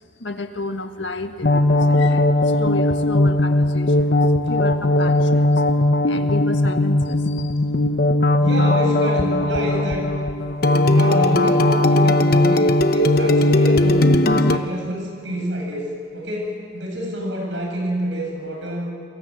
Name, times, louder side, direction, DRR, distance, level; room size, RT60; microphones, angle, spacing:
voice 1, 0.2-5.6 6.0-7.6, left 2 dB, 80° left, 7 dB, 1.7 m, -32 dB
sound 1, 1.4-14.6, left 1 dB, 55° left, 0.9 m, -18 dB
voice 2, 8.4-10.1 10.8-18.9, equal, 80° right, 0 dB, 8.0 m, -27 dB
29.0 x 22.0 x 7.8 m, 2.5 s
head